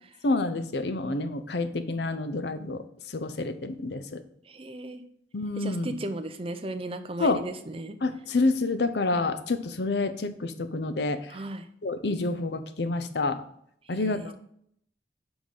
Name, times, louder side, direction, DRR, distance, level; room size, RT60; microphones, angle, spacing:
voice 1, 0.2-4.2 5.3-5.9 7.2-7.4 8.0-11.4 11.8-13.4 13.9-14.4, left 3 dB, 70° left, 10 dB, 0.7 m, -28 dB
voice 2, 4.5-5.0 5.6-8.0 11.3-11.6 13.9-14.4, right 1 dB, 30° right, 8 dB, 0.6 m, -36 dB
6.3 x 4.8 x 5.4 m, 0.68 s
head